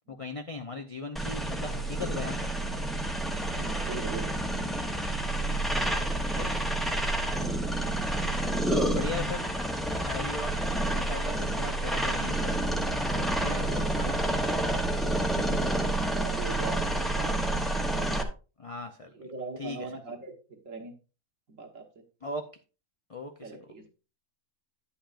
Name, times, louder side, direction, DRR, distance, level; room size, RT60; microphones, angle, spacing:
voice 1, 0.1-2.7 6.3-6.9 8.6-9.5 10.0-10.5 10.9-12.5 13.1-14.6 15.2-15.3 18.6-19.3 19.6-19.9 22.2-22.5 23.1-23.6, left 3 dB, 55° left, 5 dB, 0.3 m, -38 dB
sound 1, 1.2-18.2, right 1 dB, ahead, 0.5 m, -29 dB
voice 2, 3.5-4.3 13.6-13.9 16.2-18.1 19.1-20.9 21.5-21.8 23.4-23.9, right 4 dB, 60° right, 2 dB, 1.7 m, -41 dB
10.0 x 8.5 x 2.5 m, 0.33 s
omnidirectional pair, 1.6 m